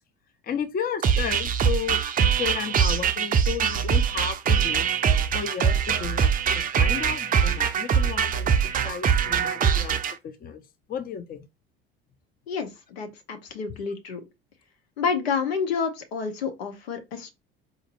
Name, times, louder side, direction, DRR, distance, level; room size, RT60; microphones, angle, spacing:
voice 1, 0.4-4.9 5.3-10.6 10.9-11.5, left 8 dB, 30° left, 0.6 m, -33 dB
sound 1, 1.0-10.1, right 7 dB, 30° right, 0.4 m, -23 dB
voice 2, 12.5-14.2 15.0-17.3, left 5 dB, 80° left, 0.8 m, -29 dB
4.2 x 2.6 x 2.5 m
hypercardioid pair, 70°, 30 cm